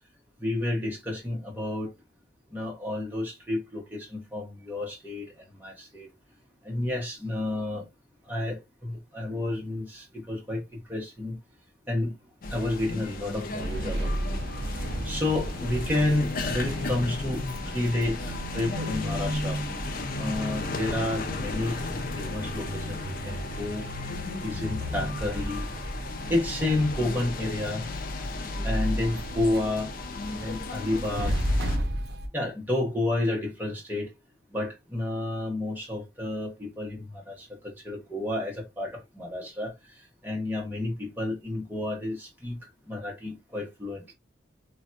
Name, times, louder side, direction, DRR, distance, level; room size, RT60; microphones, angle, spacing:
voice 1, 0.4-1.9 2.5-6.1 6.6-7.9 8.2-11.4 11.9-12.1 12.5-14.3 15.0-19.6 20.2-21.8 22.1-23.9 24.4-25.7 26.3-27.9 28.6-29.9 30.3-31.4 32.3-34.2 34.5-44.1, left 2 dB, 10° right, 0.8 m, -30 dB
sound 1, 12.4-31.8, left 3 dB, 45° left, 0.4 m, -35 dB
sound 2, 13.6-32.3, equal, 55° right, 0.6 m, -34 dB
3.3 x 2.2 x 2.6 m
head